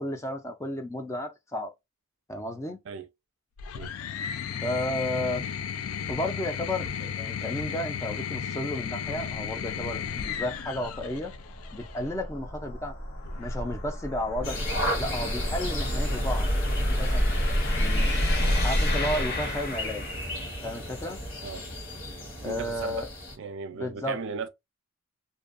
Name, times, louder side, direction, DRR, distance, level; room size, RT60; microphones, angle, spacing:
voice 1, 0.0-1.7 2.3-2.8 4.6-5.4 6.1-11.3 11.7-12.9 13.4-14.6 15.0-16.6 16.9-17.2 17.7-18.2 18.6-20.0 20.6-21.2 22.4-23.1 23.7-24.2, left 1 dB, 15° left, 0.4 m, -33 dB
sound 1, 3.6-12.0 13.2-13.8, left 7 dB, 90° left, 0.3 m, -34 dB
sound 2, 9.1-20.5, equal, 50° left, 0.8 m, -29 dB
sound 3, 14.4-23.4, equal, 65° left, 1.2 m, -34 dB
voice 2, 22.4-23.1 23.4-24.5, right 5 dB, 60° right, 0.4 m, -36 dB
2.6 x 2.2 x 2.4 m
head